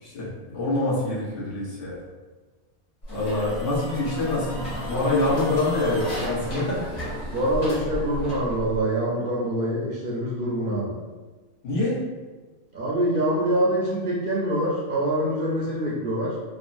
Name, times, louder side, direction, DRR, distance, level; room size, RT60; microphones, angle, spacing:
voice 1, 0.0-2.0 3.1-6.9 11.6-12.0, left 2 dB, 80° left, -6 dB, 1.2 m, -26 dB
sound 1, 3.0-8.8, equal, 60° left, 1.5 m, -33 dB
voice 2, 7.3-11.0 12.7-16.4, right 1 dB, 60° right, -5 dB, 0.6 m, -25 dB
3.5 x 2.0 x 2.5 m, 1.3 s
omnidirectional pair, 1.3 m